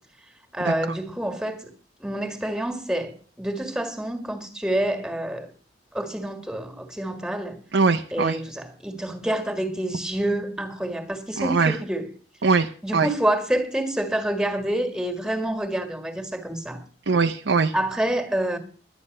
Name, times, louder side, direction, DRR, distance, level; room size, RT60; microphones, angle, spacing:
voice 1, 0.5-1.7 2.0-5.5 5.9-7.6 8.1-12.1 12.8-16.8 17.7-18.6, right 1 dB, 5° right, 1.8 m, -27 dB
voice 2, 7.7-8.4 11.4-11.7 12.4-13.1 17.1-17.7, right 4 dB, 75° right, 0.6 m, -21 dB
11.5 x 9.8 x 6.5 m
head